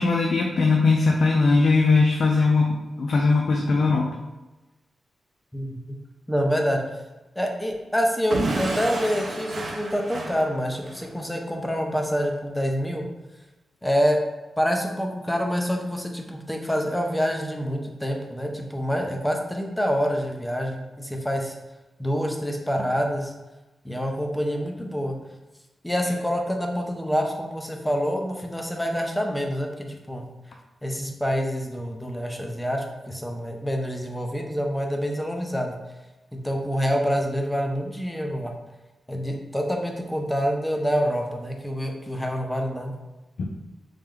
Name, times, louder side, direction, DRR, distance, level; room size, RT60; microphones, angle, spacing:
voice 1, 0.0-4.1 43.4-43.5, left 3 dB, 65° left, 0 dB, 0.4 m, -20 dB
voice 2, 5.5-6.0 6.3-7.0 7.4-13.1 13.8-14.2 14.6-21.6 22.0-23.3 23.8-25.2 25.8-30.2 30.8-35.8 36.3-38.6 39.1-43.0, equal, 5° left, 1 dB, 0.5 m, -26 dB
Explosion / Shatter, 8.3-11.1, right 2 dB, 55° right, 0.7 m, -30 dB
3.2 x 2.9 x 3.7 m, 1.1 s
wide cardioid pair, 125°, 0 cm